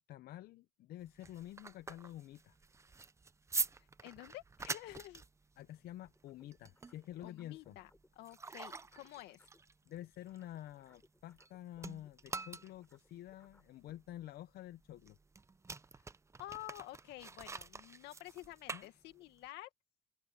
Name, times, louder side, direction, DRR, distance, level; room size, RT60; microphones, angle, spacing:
voice 1, 0.0-2.6 5.6-7.8 9.9-15.2 18.7-18.9, left 13 dB, 65° left, 0.7 m, -49 dB
sound 1, 1.0-11.5 11.8-19.5, right 4 dB, 15° right, 0.6 m, -46 dB
voice 2, 4.0-5.2 7.2-9.5 16.0-16.1 16.4-19.7, left 16 dB, 90° left, 2.0 m, -50 dB
sound 2, 6.0-9.7 10.0-13.7, left 2 dB, 10° left, 4.7 m, -70 dB
open air
cardioid pair, 110°, 17 cm